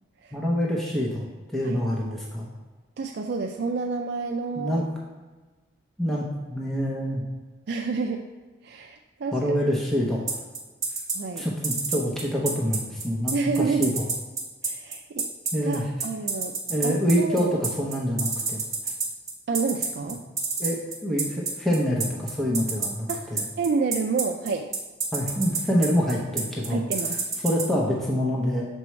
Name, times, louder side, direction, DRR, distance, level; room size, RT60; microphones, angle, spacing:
voice 1, 0.3-1.2 1.5-2.5 4.6-4.8 6.0-7.2 9.3-10.2 11.4-14.1 15.5-15.9 16.7-18.6 20.0-20.1 20.6-23.4 25.1-26.8 27.4-28.7, equal, ahead, -4 dB, 0.7 m, -26 dB
voice 2, 3.0-4.8 7.7-8.3 8.6-9.5 11.1-11.5 13.3-13.9 14.6-15.3 15.6-16.6 16.8-17.6 19.5-20.2 23.1-23.3 23.6-24.7 26.7-27.2, right 4 dB, 55° right, 2 dB, 0.3 m, -29 dB
sound 1, 10.3-27.6, right 5 dB, 15° right, 1.0 m, -27 dB
6.7 x 4.5 x 3.1 m, 1.3 s
head